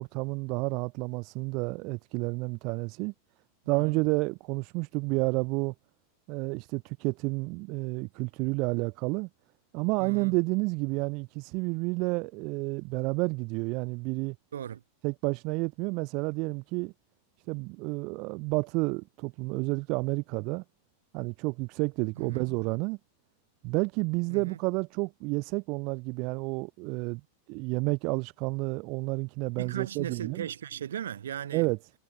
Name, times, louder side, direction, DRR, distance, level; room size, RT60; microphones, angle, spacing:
voice 1, 0.0-3.1 3.7-5.7 6.3-9.3 9.7-14.4 15.0-16.9 17.5-20.6 21.1-23.0 23.6-27.2 27.5-30.5 31.5-31.8, right 28 dB, 45° right, 0.3 m, -30 dB
voice 2, 3.6-4.0 10.0-10.3 14.5-14.8 22.1-22.5 24.3-24.6 29.6-31.7, right 9 dB, 65° right, 1.6 m, -37 dB
figure-of-eight pair, 90°, 0 cm